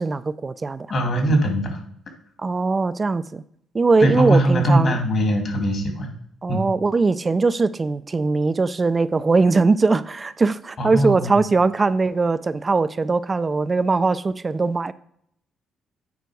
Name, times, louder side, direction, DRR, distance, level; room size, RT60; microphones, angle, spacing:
voice 1, 0.0-0.9 2.4-3.4 3.7-5.0 6.4-14.9, right 3 dB, 30° right, 0.4 m, -20 dB
voice 2, 0.9-1.8 4.0-6.1 6.5-6.7 10.8-11.3, right 1 dB, 55° left, 2.4 m, -21 dB
9.3 x 4.6 x 4.7 m
cardioid pair, 90°, 0 cm